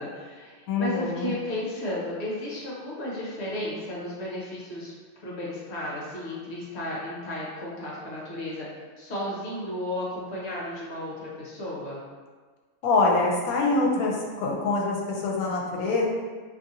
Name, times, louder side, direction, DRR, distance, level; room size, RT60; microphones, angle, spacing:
voice 1, 0.0-4.9 5.2-8.7 9.0-12.0, left 1 dB, 55° left, -5 dB, 1.0 m, -33 dB
voice 2, 0.7-1.4 12.8-16.0, left 3 dB, 80° left, -1 dB, 1.0 m, -25 dB
2.7 x 2.5 x 2.6 m, 1.4 s
omnidirectional pair, 1.5 m